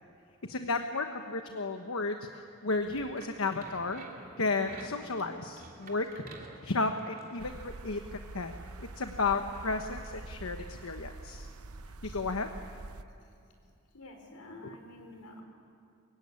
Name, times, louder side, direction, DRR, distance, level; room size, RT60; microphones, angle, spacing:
voice 1, 0.5-4.0 4.4-6.3 6.6-8.5 8.8-11.5 12.0-12.5, left 3 dB, 70° left, 6 dB, 1.2 m, -33 dB
sound 1, 2.8-7.6, right 2 dB, 40° right, 3.1 m, -50 dB
sound 2, 7.4-13.0, right 2 dB, 80° right, 0.9 m, -45 dB
voice 2, 13.9-15.4, left 1 dB, 85° left, 3 dB, 4.9 m, -48 dB
24.0 x 23.0 x 9.8 m, 2.5 s
head